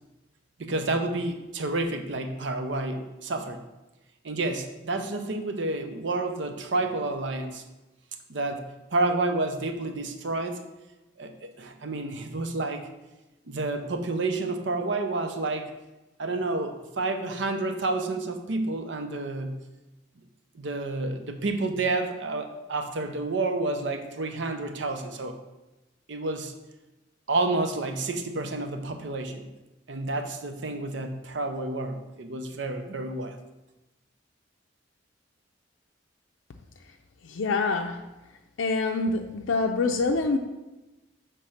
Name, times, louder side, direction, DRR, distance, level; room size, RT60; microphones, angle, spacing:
voice 1, 0.6-3.6 4.2-7.6 8.3-8.6 8.9-10.6 11.2-12.9 13.5-15.7 16.2-19.5 20.5-25.4 26.1-26.5 27.3-29.5 29.9-33.4, right 2 dB, 65° right, 6 dB, 0.7 m, -29 dB
voice 2, 37.2-38.0 38.6-40.4, left 3 dB, 85° left, 3 dB, 0.5 m, -25 dB
6.3 x 3.3 x 5.7 m, 1.0 s
head